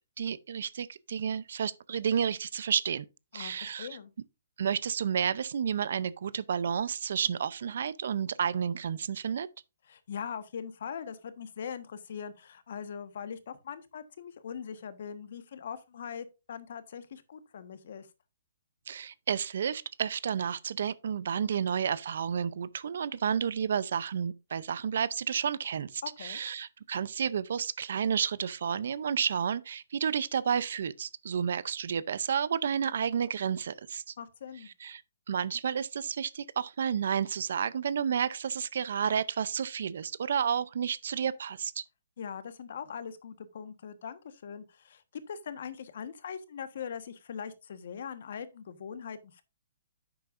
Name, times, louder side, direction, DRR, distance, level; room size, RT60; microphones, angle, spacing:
voice 1, 0.2-3.1 3.3-3.9 4.6-9.5 18.9-34.1 34.8-35.0 35.3-41.8, right 7 dB, 60° right, 0.5 m, -31 dB
voice 2, 3.3-4.1 9.9-18.1 26.0-26.4 34.2-34.7 42.2-49.4, left 7 dB, 55° left, 1.2 m, -41 dB
10.5 x 7.8 x 2.5 m
hypercardioid pair, 165°, 0 cm